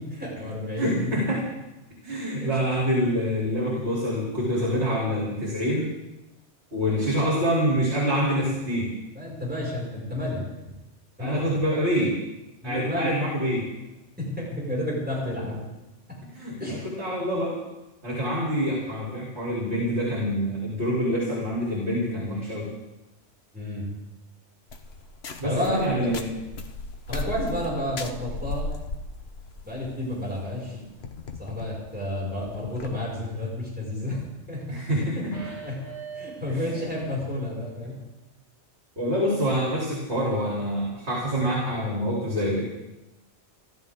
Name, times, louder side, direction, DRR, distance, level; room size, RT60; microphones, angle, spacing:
voice 1, 0.0-1.1 6.8-7.1 9.1-10.4 11.2-11.5 12.6-13.1 14.2-15.6 16.6-16.9 17.3-17.4 23.5-23.9 25.4-25.8 27.1-28.7 29.6-30.8 31.4-34.2 34.5-34.6 35.1-35.2 35.6-35.8 36.1-38.0, left 1 dB, 10° right, -5 dB, 5.7 m, -31 dB
voice 2, 0.8-1.4 2.0-5.9 6.7-8.9 11.2-12.1 12.6-13.7 16.3-17.6 18.0-22.7 25.4-26.3 30.7-30.8 34.7-35.4 36.5-36.8 39.0-42.6, equal, 60° right, -5 dB, 3.9 m, -26 dB
sound 1, 24.7-33.0, left 3 dB, 60° left, 1.3 m, -37 dB
sound 2, 35.3-37.1 37.5-37.6, right 5 dB, 40° right, 6.8 m, -41 dB
29.0 x 12.0 x 3.7 m, 0.99 s
omnidirectional pair, 1.2 m